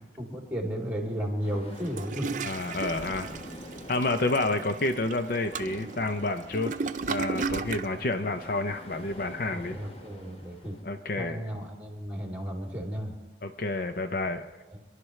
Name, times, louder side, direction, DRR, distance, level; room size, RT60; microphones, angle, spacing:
voice 1, 0.2-2.3 9.5-10.7 11.1-13.1 14.7-14.8, equal, 10° right, -1 dB, 2.8 m, -34 dB
sound 1, 1.4-10.8, equal, 35° left, 1.1 m, -47 dB
Toilet flush, 1.7-7.9, right 4 dB, 45° right, 0.5 m, -35 dB
voice 2, 2.4-3.3 3.9-6.7 7.1-9.8 10.8-11.4 13.4-14.4, left 2 dB, 55° left, 8 dB, 0.6 m, -29 dB
26.5 x 11.5 x 3.2 m, 1.2 s
head